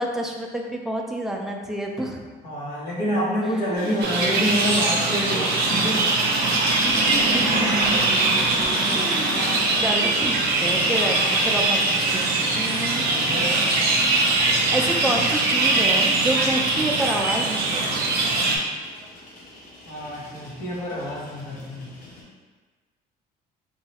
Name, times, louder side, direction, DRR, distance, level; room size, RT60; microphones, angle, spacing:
voice 1, 0.0-2.2 3.4-3.9 6.8-8.1 8.8-9.4 9.8-13.0 14.7-17.8, right 1 dB, ahead, 0 dB, 0.3 m, -29 dB
voice 2, 2.4-6.0 13.0-13.6 19.9-21.9, equal, 85° left, -5 dB, 0.9 m, -27 dB
sound 1, 3.7-22.2, left 1 dB, 50° left, 0.8 m, -36 dB
sound 2, 4.0-18.6, right 3 dB, 70° right, 0.5 m, -22 dB
3.0 x 2.3 x 2.8 m, 1.4 s
cardioid pair, 110°, 17 cm